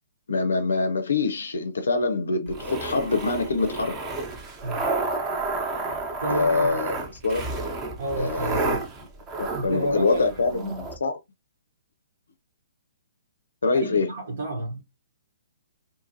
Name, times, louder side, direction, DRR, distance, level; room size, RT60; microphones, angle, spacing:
voice 1, 0.3-4.0 6.3-6.9 7.2-7.5 8.2-8.8 9.4-11.2 13.6-14.1, left 3 dB, 80° left, 0.5 m, -25 dB
sound 1, 2.5-11.0, right 3 dB, 25° right, 0.8 m, -31 dB
voice 2, 6.2-6.8 8.0-8.9 9.5-10.8 13.7-14.8, right 2 dB, 65° right, 1.1 m, -32 dB
2.7 x 2.5 x 2.6 m
hypercardioid pair, 135°, 0 cm